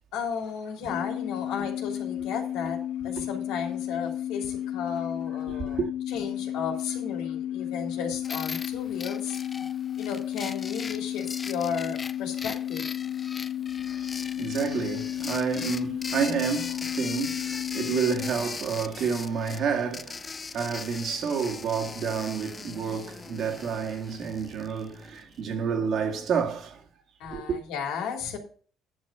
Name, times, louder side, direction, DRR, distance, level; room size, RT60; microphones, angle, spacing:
voice 1, 0.1-5.8 6.1-9.6 10.0-12.8 27.2-28.4, left 6 dB, 85° left, 2.9 m, -34 dB
sound 1, 0.9-18.3, left 11 dB, 50° left, 0.9 m, -33 dB
voice 2, 5.5-5.9 13.9-26.8 27.3-27.6, right 6 dB, 60° right, 1.8 m, -30 dB
sound 2, 8.2-25.2, left 4 dB, 25° left, 0.5 m, -40 dB
10.5 x 6.4 x 5.5 m
cardioid pair, 125°, 0 cm